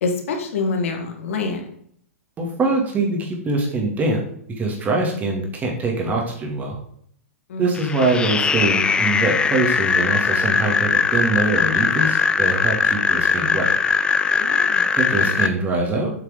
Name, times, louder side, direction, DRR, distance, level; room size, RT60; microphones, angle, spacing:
voice 1, 0.0-1.6 7.5-7.8 14.4-14.8, left 4 dB, 60° left, 4 dB, 1.6 m, -26 dB
voice 2, 2.4-4.2 4.6-6.8 7.6-13.7 14.9-16.1, right 2 dB, 20° right, 0 dB, 2.2 m, -23 dB
sound 1, 7.8-15.5, left 5 dB, 10° left, 0.4 m, -20 dB
7.8 x 5.7 x 3.7 m, 0.65 s
figure-of-eight pair, 110°, 8 cm